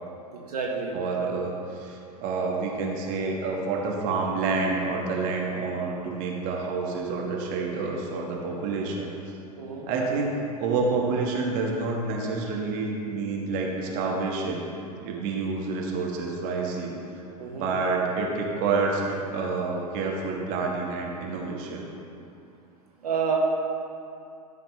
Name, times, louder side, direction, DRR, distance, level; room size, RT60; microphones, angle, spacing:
voice 1, 0.3-1.0 9.6-9.9 17.4-17.7 23.0-23.4, right 6 dB, 75° right, -2 dB, 1.5 m, -29 dB
voice 2, 0.9-9.1 9.9-14.7 15.0-16.9 17.6-21.9, right 4 dB, 45° right, -1 dB, 1.5 m, -28 dB
13.5 x 6.8 x 3.2 m, 2.6 s
figure-of-eight pair, 85°, 20 cm